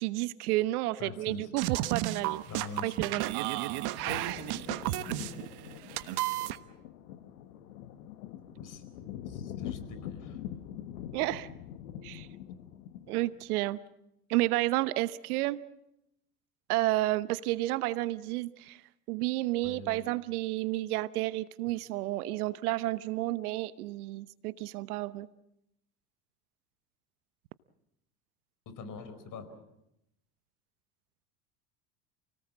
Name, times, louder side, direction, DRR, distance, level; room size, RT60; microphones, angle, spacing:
voice 1, 0.0-2.4 2.8-3.3 5.4-5.5 11.1-11.5 12.0-12.3 13.1-13.8 14.3-15.6 16.7-18.8 19.1-25.3, right 18 dB, 75° right, 16 dB, 1.0 m, -31 dB
voice 2, 1.0-1.5 2.5-3.1 8.6-10.4 19.6-20.1 28.6-29.4, left 4 dB, 45° left, 10 dB, 4.9 m, -44 dB
sound 1, 1.6-6.6, right 16 dB, 55° right, 1.3 m, -32 dB
sound 2, 3.1-13.4, left 10 dB, 75° left, 1.8 m, -44 dB
29.0 x 18.5 x 7.5 m, 0.84 s
hypercardioid pair, 85°, 45 cm